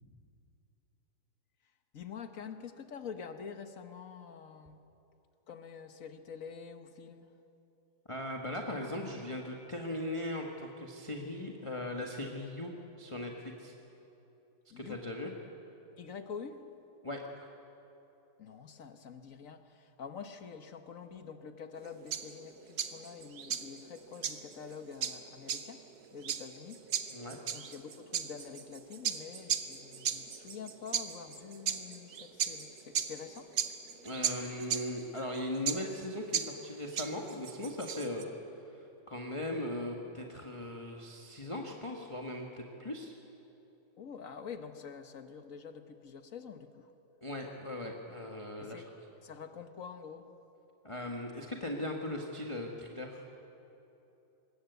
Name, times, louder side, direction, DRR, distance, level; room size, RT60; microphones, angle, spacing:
voice 1, 1.9-4.8 5.5-7.3 14.7-15.0 16.0-16.7 18.4-34.6 44.0-46.9 48.6-48.9 49.2-50.3, left 6 dB, 45° left, 8 dB, 1.3 m, -47 dB
voice 2, 8.1-12.7 13.0-13.7 14.8-15.3 17.0-17.5 27.1-27.4 34.0-43.1 47.2-48.8 50.8-53.2, left 1 dB, 15° left, 1 dB, 1.5 m, -39 dB
sound 1, 21.8-38.2, right 8 dB, 55° right, 1.6 m, -37 dB
25.5 x 21.5 x 8.2 m, 3.0 s
omnidirectional pair, 2.4 m